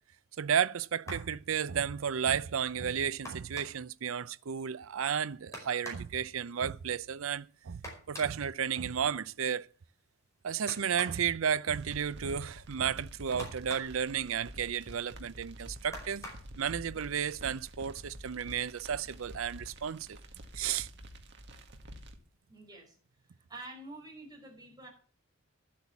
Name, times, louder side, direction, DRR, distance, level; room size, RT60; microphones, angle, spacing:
voice 1, 0.4-7.8 8.1-9.7 10.4-16.2 16.6-20.2 20.5-20.9, right 8 dB, 75° right, 0.5 m, -33 dB
sound 1, 1.0-1.4 3.2-3.9 5.5-6.1 7.8-8.4 10.7-11.2 13.4-14.0 15.9-16.5 17.6-17.7 18.2-18.4, left 1 dB, 15° left, 5.2 m, -45 dB
sound 2, 11.8-22.2, equal, 60° right, 1.8 m, -49 dB
voice 2, 22.5-23.0 23.5-24.9, right 2 dB, 20° right, 5.7 m, -47 dB
12.0 x 8.5 x 7.2 m
head